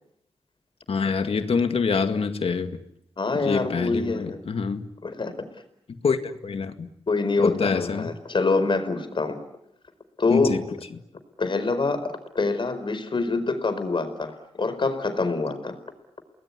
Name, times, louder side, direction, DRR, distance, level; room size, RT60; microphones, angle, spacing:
voice 1, 0.9-2.8 3.3-4.9 6.0-6.9 7.4-8.1 10.3-10.6, left 5 dB, 80° left, 8 dB, 2.1 m, -25 dB
voice 2, 3.2-4.4 5.0-5.5 7.1-9.4 10.2-10.6 11.4-15.8, left 3 dB, 55° left, 10 dB, 4.6 m, -25 dB
29.5 x 20.5 x 9.7 m, 0.76 s
cardioid pair, 70°, 10 cm